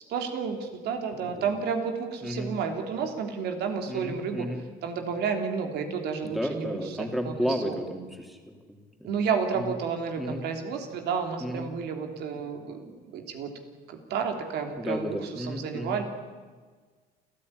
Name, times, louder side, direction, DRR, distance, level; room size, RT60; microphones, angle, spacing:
voice 1, 0.1-4.5 4.8-7.0 7.2-7.8 9.0-13.5 13.9-16.0, right 6 dB, 75° right, 5 dB, 3.3 m, -31 dB
voice 2, 1.2-1.5 2.2-2.5 3.9-4.6 6.2-9.3 9.5-9.7 10.2-10.4 11.4-11.7 14.8-16.0, equal, ahead, 3 dB, 3.5 m, -33 dB
28.5 x 13.5 x 9.9 m, 1.5 s
cardioid pair, 110°, 17 cm